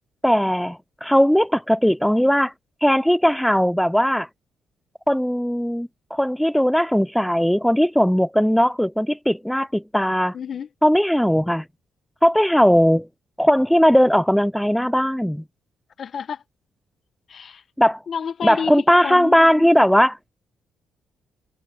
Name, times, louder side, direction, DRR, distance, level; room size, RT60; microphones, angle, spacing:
voice 1, 0.2-2.5 2.8-4.3 5.1-10.3 10.8-11.6 12.2-13.1 13.4-15.4 17.8-18.0 18.4-20.3, equal, ahead, 0.5 m, -18 dB
voice 2, 10.3-10.7 16.0-16.4 17.3-17.6 18.1-19.9, left 7 dB, 55° left, 1.0 m, -30 dB
cardioid pair, 90°, 0 cm